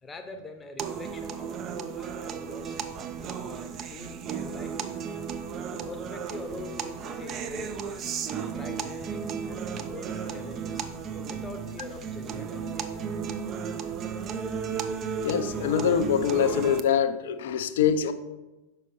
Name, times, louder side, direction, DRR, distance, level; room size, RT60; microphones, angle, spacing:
voice 1, 0.0-5.2 5.7-8.1 8.5-13.0, left 3 dB, 15° left, 6 dB, 0.8 m, -44 dB
sound 1, 0.8-16.8, right 6 dB, 30° right, 0.5 m, -34 dB
voice 2, 15.2-18.1, left 8 dB, 55° left, 11 dB, 0.4 m, -24 dB
6.5 x 5.1 x 4.4 m, 1.1 s
figure-of-eight pair, 90°, 0 cm